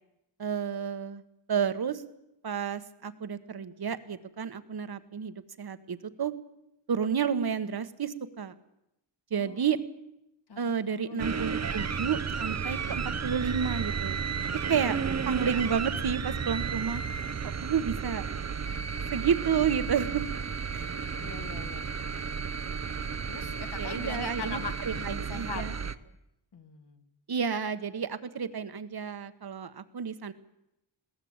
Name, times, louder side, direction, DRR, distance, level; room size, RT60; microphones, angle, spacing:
voice 1, 0.4-1.2 1.5-2.0 2.4-6.3 6.9-8.5 9.3-9.8 10.6-14.2 14.7-15.0 15.2-17.0 17.6-18.2 19.1-20.2 20.7-21.0 23.8-24.6 24.9-25.7 27.3-30.3, right 7 dB, 55° right, 12 dB, 1.4 m, -30 dB
voice 2, 9.3-9.8 10.5-11.9 21.2-21.9 23.3-25.6 26.5-27.0, left 5 dB, 60° left, 6 dB, 2.2 m, -42 dB
sound 1, 11.2-26.0, right 6 dB, 35° right, 0.8 m, -33 dB
21.0 x 17.5 x 8.8 m, 0.86 s
wide cardioid pair, 150°, 45 cm